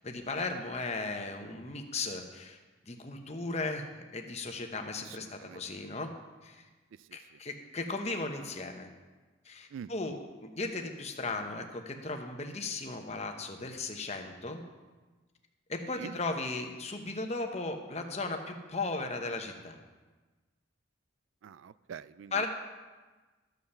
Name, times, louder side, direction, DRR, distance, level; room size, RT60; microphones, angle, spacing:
voice 1, 0.0-2.6 2.9-6.1 6.4-6.6 7.1-8.9 9.4-14.6 15.7-19.8 22.3-22.5, left 3 dB, 30° left, 4 dB, 1.0 m, -36 dB
voice 2, 5.0-5.6 7.0-7.4 9.7-9.9 15.9-16.2 21.4-22.5, right 7 dB, 75° right, 16 dB, 0.3 m, -46 dB
13.0 x 5.6 x 6.8 m, 1.3 s
head